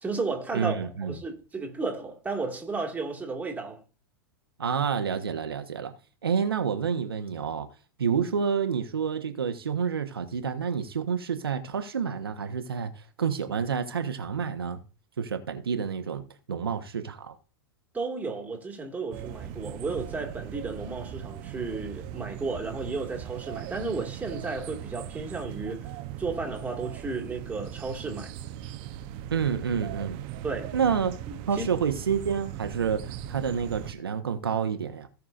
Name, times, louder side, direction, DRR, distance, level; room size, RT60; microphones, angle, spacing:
voice 1, 0.0-3.8 17.9-25.9 26.2-28.3 30.4-30.8 31.3-31.7, right 3 dB, 10° right, 2.2 m, -33 dB
voice 2, 0.5-1.2 4.6-5.9 6.2-7.7 8.0-14.8 15.2-17.3 29.3-30.2 30.7-31.2 31.5-35.1, right 6 dB, 80° right, 1.3 m, -29 dB
sound 1, 19.1-33.9, right 11 dB, 45° right, 0.9 m, -39 dB
17.0 x 6.1 x 2.6 m
figure-of-eight pair, 100°, 12 cm